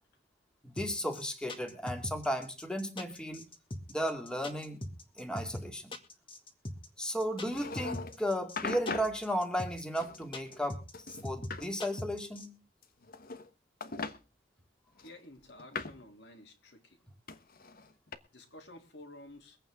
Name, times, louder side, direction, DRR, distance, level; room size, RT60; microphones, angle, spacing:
voice 1, 0.6-3.5 3.9-4.9 5.2-5.9 7.0-10.8 11.2-12.5, equal, 5° left, 4 dB, 2.3 m, -34 dB
sound 1, 0.8-12.5, left 1 dB, 30° left, 2.1 m, -41 dB
sound 2, 7.4-8.2 8.6-9.2 10.0-10.7 10.9-11.7 12.8-13.5 13.8-14.2 15.0-16.1 17.3-18.2, left 4 dB, 50° left, 1.2 m, -40 dB
voice 2, 15.0-17.0 18.3-19.6, left 1 dB, 70° left, 5 dB, 3.1 m, -52 dB
23.5 x 8.9 x 3.7 m, 0.32 s
head